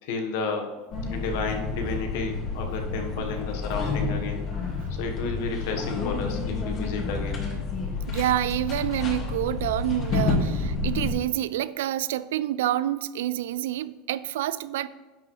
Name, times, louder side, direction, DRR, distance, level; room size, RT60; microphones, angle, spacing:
voice 1, 0.0-0.8 1.1-4.4 4.9-7.5, left 4 dB, 75° left, 3 dB, 1.3 m, -32 dB
sound 1, 0.9-11.1, left 3 dB, 40° left, 2.2 m, -29 dB
voice 2, 8.1-14.9, right 13 dB, 85° right, 16 dB, 0.4 m, -28 dB
10.5 x 6.1 x 3.3 m, 1.2 s
supercardioid pair, 130°, 0 cm